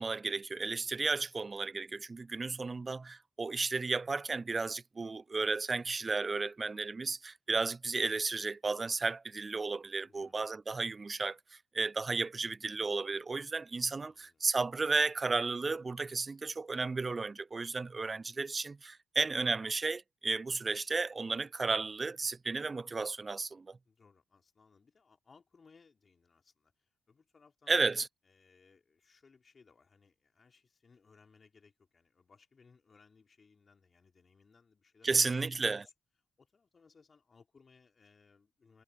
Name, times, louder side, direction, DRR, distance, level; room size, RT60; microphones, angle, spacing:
voice 1, 0.0-23.8 27.7-28.1 35.0-35.9, right 4 dB, 35° right, 0.3 m, -33 dB
voice 2, 10.0-10.4 14.0-14.4 23.9-27.9 28.2-35.9 36.4-38.8, left 5 dB, 45° left, 5.2 m, -64 dB
supercardioid pair, 45°, 0 cm